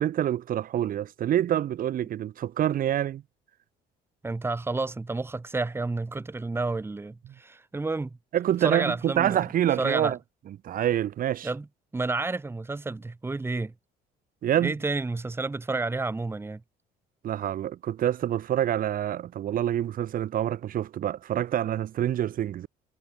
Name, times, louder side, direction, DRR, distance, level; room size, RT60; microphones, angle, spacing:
voice 1, 0.0-3.2 8.3-10.2 10.6-11.5 14.4-14.7 17.2-22.7, right 11 dB, 55° right, 1.6 m, -26 dB
voice 2, 4.2-8.2 8.6-9.4 9.8-10.2 11.4-11.7 11.9-13.7 14.6-16.6, right 3 dB, 15° right, 1.4 m, -30 dB
cardioid pair, 110°, 17 cm